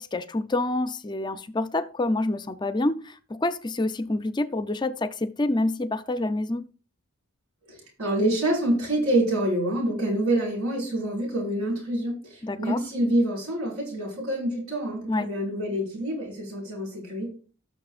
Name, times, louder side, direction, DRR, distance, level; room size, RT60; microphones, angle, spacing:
voice 1, 0.0-6.6 12.4-12.8 15.1-15.3, left 2 dB, 20° left, 0.5 m, -27 dB
voice 2, 7.7-17.3, right 1 dB, 85° right, 5.3 m, -26 dB
18.0 x 6.4 x 2.4 m
head